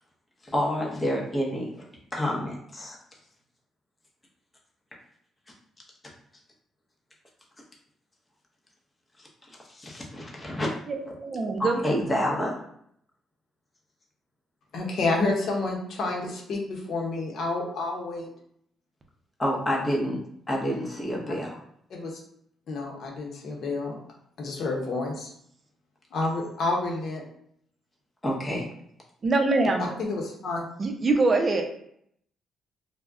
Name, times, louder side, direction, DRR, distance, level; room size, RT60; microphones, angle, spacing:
voice 1, 0.5-1.7 2.1-3.0 9.7-10.7 11.1-11.2 11.6-12.6 19.4-20.2 20.5-21.6 28.2-28.7, equal, 20° left, -2 dB, 0.7 m, -28 dB
voice 2, 10.9-11.8 29.2-29.9 30.8-31.6, right 3 dB, 35° right, 4 dB, 0.5 m, -24 dB
voice 3, 14.7-18.3 21.9-22.2 22.7-24.0 24.4-25.3 26.1-27.2 29.8-30.6, left 3 dB, 65° left, 0 dB, 0.7 m, -29 dB
2.2 x 2.1 x 3.6 m, 0.69 s
cardioid pair, 90°, 0 cm